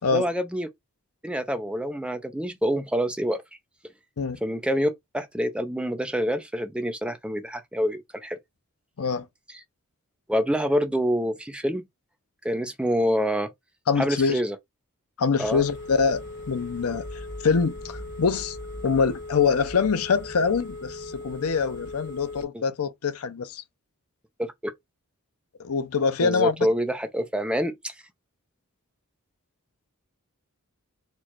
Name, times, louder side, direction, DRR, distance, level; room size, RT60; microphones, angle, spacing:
voice 1, 0.1-0.7 1.2-3.4 4.4-8.4 10.3-11.9 12.4-13.5 14.0-14.6 15.4-15.6 22.5-22.6 24.4-24.7 26.2-27.9, equal, 5° right, 0.5 m, -26 dB
voice 2, 13.9-14.4 15.2-18.6 18.8-23.6 25.6-26.5, left 5 dB, 75° left, 0.6 m, -24 dB
Telephone, 15.4-22.4, left 2 dB, 55° left, 1.6 m, -38 dB
4.5 x 2.4 x 4.5 m
head